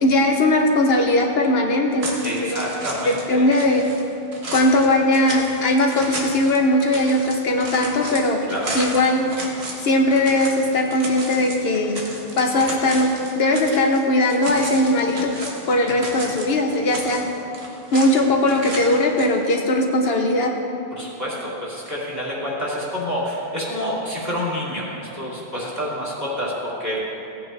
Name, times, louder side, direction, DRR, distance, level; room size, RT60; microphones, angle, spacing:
voice 1, 0.0-2.6 3.0-3.9 4.5-8.4 8.7-9.3 9.8-12.0 12.4-15.3 15.7-17.3 17.9-20.5, left 1 dB, 70° left, 2 dB, 1.0 m, -19 dB
sound 1, 2.0-3.3 3.5-14.0 14.3-16.5 16.7-18.2 18.5-19.3, right 2 dB, 75° right, 1.7 m, -33 dB
voice 2, 2.2-3.5 8.5-8.7 15.9-16.0 20.9-27.0, equal, 15° right, -7 dB, 2.8 m, -28 dB
16.5 x 8.9 x 3.3 m, 2.8 s
omnidirectional pair, 1.1 m